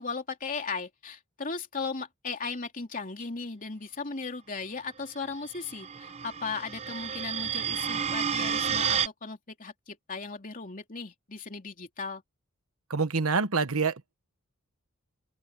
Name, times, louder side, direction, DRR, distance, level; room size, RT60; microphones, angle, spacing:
voice 1, 0.0-12.2, left 4 dB, 35° left, 3.1 m, -37 dB
sound 1, 5.5-9.1, right 7 dB, 30° right, 0.6 m, -30 dB
voice 2, 12.9-14.1, right 4 dB, 70° right, 1.2 m, -27 dB
open air
head